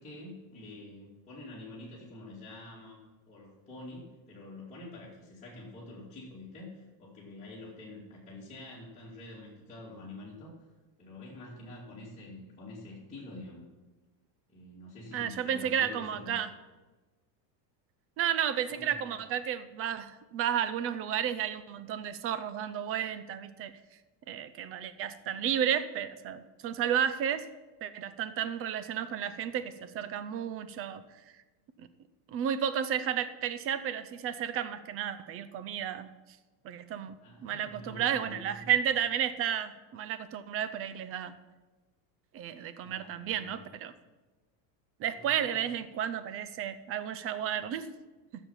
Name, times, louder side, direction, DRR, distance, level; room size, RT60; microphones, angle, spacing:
voice 1, 0.0-3.0 3.3-10.5 11.0-13.7 14.5-16.4 18.7-19.2 37.2-38.7 42.8-43.6 45.1-45.6, left 2 dB, 15° left, -9 dB, 2.5 m, -47 dB
voice 2, 15.1-16.5 18.2-23.8 24.3-27.5 27.8-31.0 31.8-31.9 32.3-36.1 36.6-37.2 37.4-41.3 42.3-43.9 45.0-47.9, right 9 dB, 30° right, 13 dB, 0.5 m, -32 dB
13.0 x 7.1 x 5.7 m, 1.2 s
supercardioid pair, 150°, 48 cm